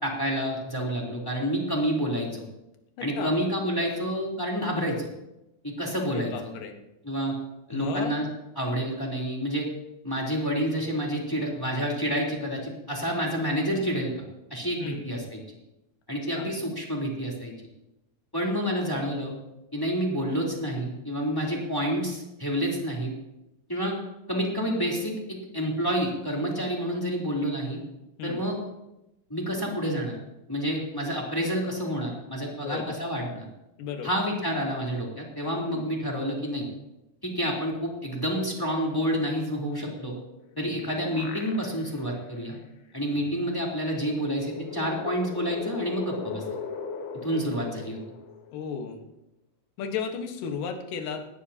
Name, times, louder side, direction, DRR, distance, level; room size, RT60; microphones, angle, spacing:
voice 1, 0.0-2.5 3.0-5.1 5.6-6.5 7.0-7.3 7.7-8.2 8.5-9.7 10.0-14.1 14.5-15.4 16.1-17.5 18.3-19.3 19.7-23.1 23.7-23.9 24.3-27.8 28.2-28.5 29.3-30.1 30.5-33.5 34.0-36.7 37.2-40.2 40.6-42.6 42.9-46.4 47.2-48.0, equal, 5° left, -2 dB, 3.1 m, -29 dB
voice 2, 3.0-3.4 6.1-6.8 7.7-8.1 14.8-15.0 16.3-16.5 28.2-28.4 32.5-33.0 33.8-34.1 35.7-35.8 40.6-40.8 48.5-49.0 49.8-51.2, left 6 dB, 65° left, 3 dB, 3.0 m, -34 dB
sound 1, 40.5-42.1 42.5-42.6 43.9-48.7, left 5 dB, 85° left, 3.4 m, -38 dB
19.5 x 17.5 x 2.9 m, 0.92 s
omnidirectional pair, 4.4 m